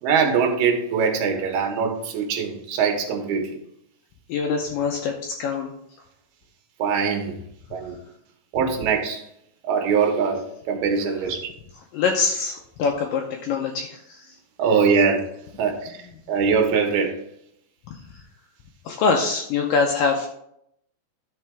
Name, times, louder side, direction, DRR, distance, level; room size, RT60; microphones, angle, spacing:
voice 1, 0.0-3.6 6.8-7.3 7.7-7.9 8.5-9.2 9.7-10.4 10.7-11.5 14.6-15.2 15.6-15.9 16.3-17.1, right 6 dB, 75° right, 3 dB, 3.0 m, -22 dB
voice 2, 4.3-5.7 8.6-8.7 11.9-14.3 14.7-14.8 15.5-15.7 17.9-18.2 18.9-20.3, left 5 dB, 90° left, 1 dB, 2.0 m, -24 dB
12.0 x 4.9 x 3.4 m, 0.75 s
omnidirectional pair, 4.7 m